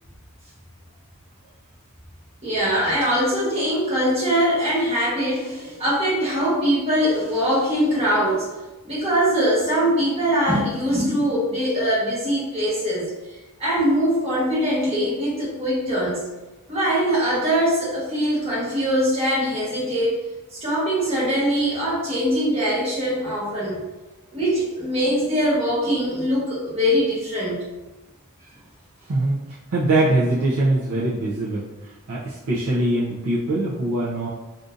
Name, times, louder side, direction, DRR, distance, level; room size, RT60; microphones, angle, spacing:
voice 1, 2.4-8.5 8.8-16.2 16.7-20.2 20.5-23.8 24.3-27.6, equal, 25° right, -8 dB, 1.2 m, -22 dB
voice 2, 29.7-34.3, right 2 dB, 75° right, -8 dB, 0.6 m, -22 dB
3.6 x 2.6 x 2.5 m, 1.1 s
head